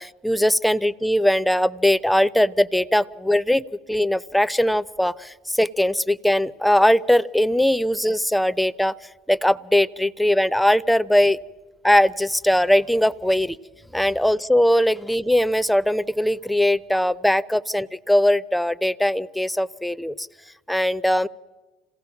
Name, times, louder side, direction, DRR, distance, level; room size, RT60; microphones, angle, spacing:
voice 1, 0.0-8.9 9.3-11.4 11.8-13.6 13.9-20.3 20.7-21.3, left 1 dB, 5° left, 16 dB, 0.6 m, -20 dB
27.0 x 17.0 x 5.9 m, 1.3 s
supercardioid pair, 90°, 0 cm